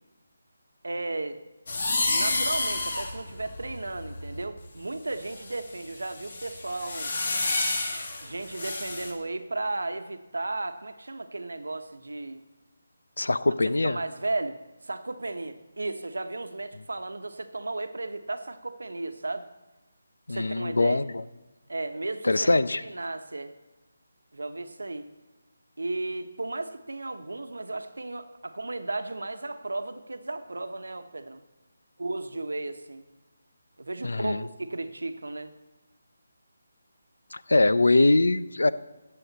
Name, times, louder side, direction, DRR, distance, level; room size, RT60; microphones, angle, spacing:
voice 1, 0.8-1.4 2.1-7.1 8.2-12.4 13.8-19.5 20.3-21.0 21.7-23.5 24.3-25.1 25.8-31.4 32.0-33.0 33.8-35.5, right 2 dB, 90° right, 9 dB, 1.0 m, -34 dB
sound 1, 1.7-4.6 5.2-9.1, left 2 dB, 55° left, 2.0 m, -30 dB
voice 2, 13.2-14.0 20.3-21.2 22.2-22.8 34.0-34.4 37.3-38.7, left 2 dB, 90° left, 15 dB, 0.6 m, -22 dB
14.5 x 7.7 x 4.1 m, 1.1 s
figure-of-eight pair, 165°, 0 cm